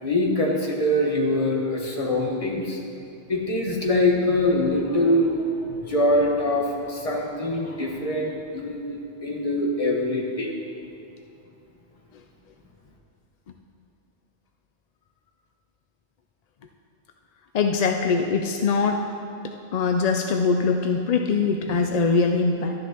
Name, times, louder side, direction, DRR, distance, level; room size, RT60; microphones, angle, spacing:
voice 1, 0.0-2.8 3.3-10.5, left 1 dB, 30° left, -1 dB, 1.3 m, -24 dB
voice 2, 17.5-19.0 19.7-22.7, left 4 dB, 55° left, 4 dB, 0.4 m, -22 dB
12.0 x 10.5 x 2.9 m, 2.6 s
omnidirectional pair, 1.2 m